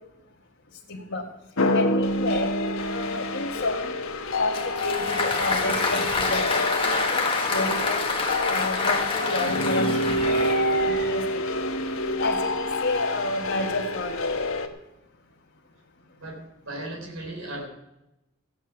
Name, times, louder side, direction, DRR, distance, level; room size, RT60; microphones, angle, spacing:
voice 1, 0.9-1.2 1.7-2.5 2.9-4.0 4.4-8.0 8.5-10.2 10.8-11.4 12.0-14.3, left 2 dB, 55° left, -3 dB, 1.6 m, -30 dB
sound 1, 1.6-14.7, left 1 dB, 80° left, 1.3 m, -27 dB
Applause, 4.5-10.9, left 3 dB, 25° left, 1.6 m, -27 dB
sound 2, 5.0-7.9 8.5-11.3, right 1 dB, 35° right, 4.5 m, -40 dB
voice 2, 16.2-17.6, right 1 dB, 70° right, 2 dB, 3.9 m, -36 dB
15.5 x 9.7 x 5.9 m, 0.92 s
head